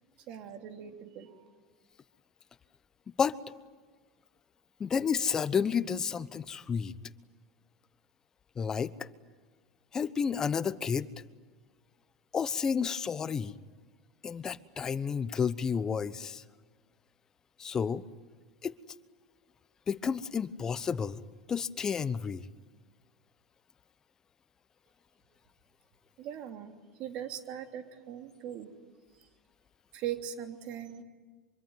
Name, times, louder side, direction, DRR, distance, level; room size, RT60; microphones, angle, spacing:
voice 1, 0.3-1.6 26.2-26.7 27.0-28.7 29.9-31.0, right 10 dB, 55° right, 6 dB, 3.2 m, -40 dB
voice 2, 4.8-6.9 8.6-9.1 9.9-11.1 12.3-13.5 14.2-16.4 17.6-18.0 18.6-18.7 19.9-21.2 21.5-22.4, left 6 dB, 25° left, 16 dB, 1.0 m, -31 dB
25.0 x 24.0 x 9.4 m, 1.4 s
hypercardioid pair, 95°, 2 cm